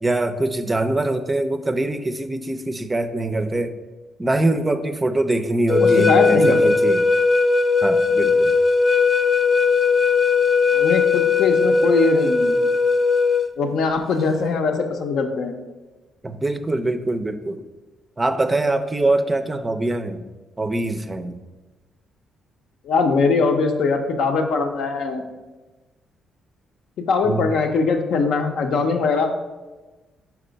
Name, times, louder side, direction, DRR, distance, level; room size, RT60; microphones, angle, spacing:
voice 1, 0.0-3.7 4.2-7.0 7.8-8.5 16.2-17.6 18.2-20.2 20.6-21.4 27.2-27.5, right 2 dB, 20° right, 9 dB, 0.4 m, -23 dB
sound 1, 5.7-13.5, left 4 dB, 40° left, 0.4 m, -18 dB
voice 2, 5.8-6.7 10.7-12.6 13.6-15.6 22.8-25.2 27.0-29.3, left 4 dB, 75° left, 4 dB, 0.7 m, -21 dB
4.7 x 4.3 x 5.1 m, 1.2 s
cardioid pair, 90°, 0 cm